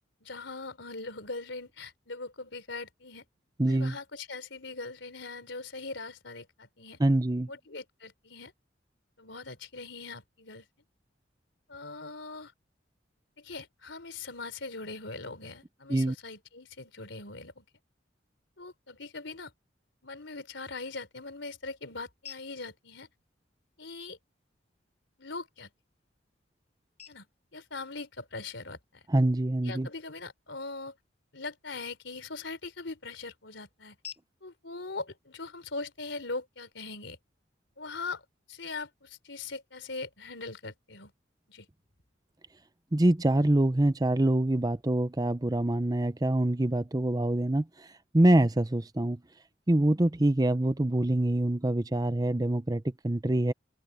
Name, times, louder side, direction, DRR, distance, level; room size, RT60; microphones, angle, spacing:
voice 1, 0.2-3.3 3.7-7.0 7.5-8.5 9.2-10.6 11.7-12.5 13.4-17.6 18.6-19.5 20.0-23.1 23.8-24.2 25.2-25.7 27.1-27.3 27.5-29.0 29.6-30.9 31.3-34.0 34.4-37.2 37.8-38.2 38.5-41.1 41.5-41.7, left 3 dB, 80° left, 3.8 m, -41 dB
voice 2, 3.6-4.0 7.0-7.5 15.9-16.1 29.1-29.9 42.9-47.9 48.1-49.2 49.7-53.5, right 1 dB, 20° right, 0.7 m, -25 dB
sound 1, 20.5-36.5, left 7 dB, 35° left, 7.3 m, -57 dB
head